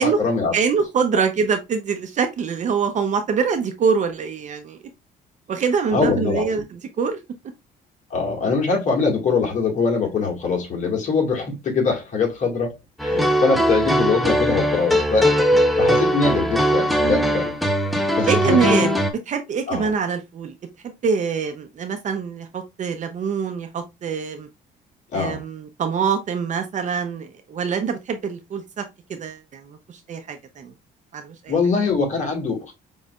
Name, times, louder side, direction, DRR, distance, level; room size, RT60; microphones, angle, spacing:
voice 1, 0.0-0.5 1.1-1.2 5.9-6.6 8.1-12.7 13.0-15.3 15.8-17.5 18.1-18.9 19.7-19.9 25.1-25.4 31.5-32.7, left 4 dB, 45° left, 2.0 m, -23 dB
voice 2, 0.5-4.8 5.5-7.2 17.0-17.4 18.3-18.9 19.3-20.5 20.8-24.5 25.1-28.8 29.1-30.7 31.1-31.5, right 6 dB, 45° right, 0.7 m, -24 dB
sound 1, 13.0-19.1, equal, ahead, 0.7 m, -20 dB
5.3 x 3.2 x 2.4 m
cardioid pair, 110°, 17 cm